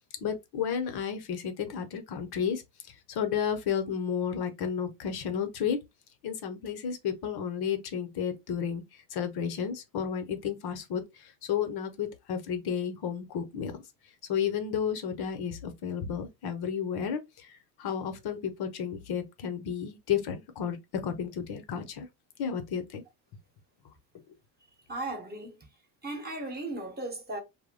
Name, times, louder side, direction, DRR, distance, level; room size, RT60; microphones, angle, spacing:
voice 1, 0.2-2.6 3.1-5.8 6.2-8.8 9.1-13.8 14.3-17.5 17.8-22.1 22.4-23.0, left 7 dB, 50° left, 0.8 m, -32 dB
voice 2, 24.9-25.7 26.0-27.4, right 2 dB, 20° right, 1.0 m, -36 dB
2.2 x 2.1 x 3.6 m
supercardioid pair, 85°, 48 cm